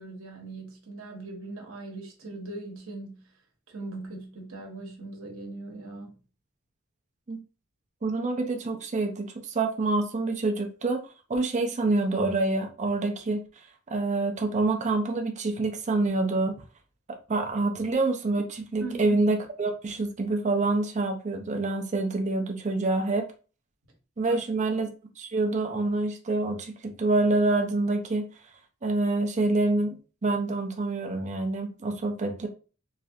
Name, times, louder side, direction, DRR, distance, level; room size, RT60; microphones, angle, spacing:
voice 1, 0.0-3.3 3.7-6.2 17.7-17.9 18.8-19.2 24.2-24.4, right 3 dB, 65° right, 0.9 m, -40 dB
voice 2, 8.0-11.0 11.3-13.4 13.9-16.6 17.3-23.3 24.2-24.9 25.2-28.3 28.8-30.0 30.2-32.5, right 2 dB, 35° right, 0.5 m, -26 dB
3.2 x 2.4 x 2.6 m
head